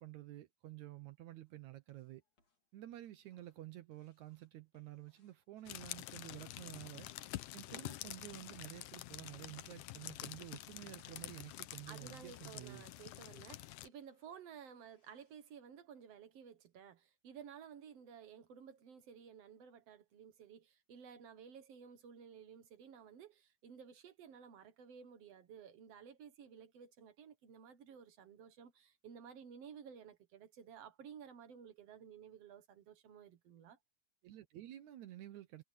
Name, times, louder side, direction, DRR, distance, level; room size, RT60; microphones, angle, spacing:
voice 1, 0.0-2.2 2.7-7.1 7.5-12.8 34.2-35.6, right 14 dB, 70° right, 1.9 m, -51 dB
sound 1, 1.5-2.6 2.9-6.7 7.0-10.6 11.0-13.1 13.5-15.6, left 3 dB, 50° left, 5.7 m, -73 dB
sound 2, 5.7-13.9, left 15 dB, 75° left, 2.2 m, -48 dB
voice 2, 11.9-33.8, right 7 dB, 55° right, 2.1 m, -55 dB
omnidirectional pair, 4.0 m